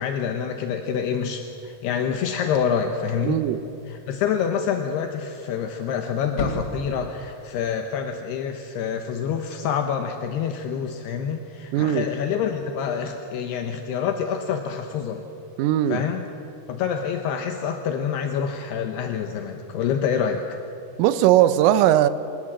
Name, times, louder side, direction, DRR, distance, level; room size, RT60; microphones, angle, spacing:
voice 1, 0.0-3.4 3.9-15.2 15.9-16.2 16.7-20.6, left 7 dB, 75° left, 2.5 m, -27 dB
sound 1, 0.8-8.0, left 2 dB, 40° left, 2.3 m, -40 dB
voice 2, 3.2-3.6 11.7-12.1 15.6-16.0 21.0-22.1, right 12 dB, 85° right, 3.4 m, -19 dB
27.0 x 21.5 x 7.5 m
omnidirectional pair, 6.0 m